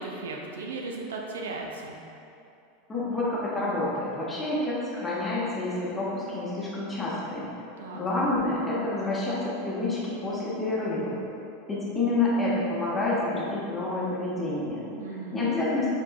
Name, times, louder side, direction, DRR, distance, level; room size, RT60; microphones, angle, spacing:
voice 1, 0.0-1.9 7.8-8.0 15.0-15.4, right 3 dB, 65° right, 0 dB, 0.5 m, -36 dB
voice 2, 2.9-7.5 7.9-11.1 11.7-14.9 15.3-15.9, left 2 dB, 15° left, -7 dB, 1.0 m, -28 dB
4.5 x 3.5 x 2.3 m, 2.7 s
figure-of-eight pair, 85°, 0 cm